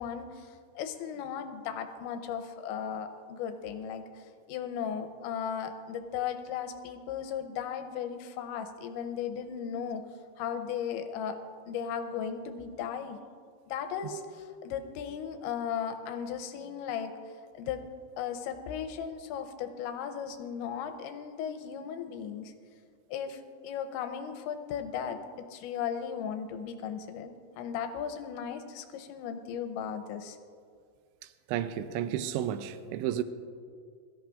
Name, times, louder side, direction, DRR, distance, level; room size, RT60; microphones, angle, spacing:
voice 1, 0.0-10.0 10.4-11.4 11.7-13.2 13.7-17.1 17.5-17.8 18.2-22.5 23.1-30.4, left 8 dB, 85° left, 3.0 m, -36 dB
voice 2, 31.5-33.2, right 10 dB, 80° right, 2.9 m, -32 dB
22.0 x 14.0 x 2.5 m
omnidirectional pair, 5.4 m